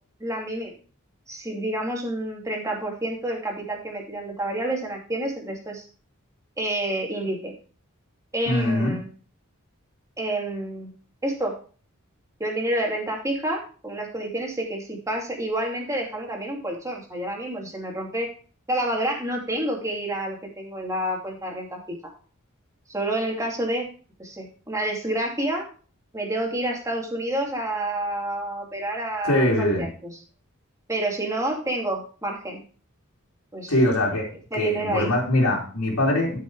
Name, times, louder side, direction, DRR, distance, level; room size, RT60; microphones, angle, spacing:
voice 1, 0.2-0.7 1.3-5.8 6.6-7.5 8.3-9.1 10.2-10.9 11.2-11.5 12.4-18.3 18.7-22.1 22.9-23.9 24.2-25.6 26.1-30.1 30.9-32.6 33.5-33.7 34.5-35.1, right 1 dB, 15° right, 0 dB, 2.7 m, -29 dB
voice 2, 8.5-9.0 29.2-29.9 33.7-34.3 34.5-36.4, left 1 dB, 90° left, -4 dB, 3.3 m, -22 dB
12.5 x 6.5 x 4.8 m, 0.40 s
head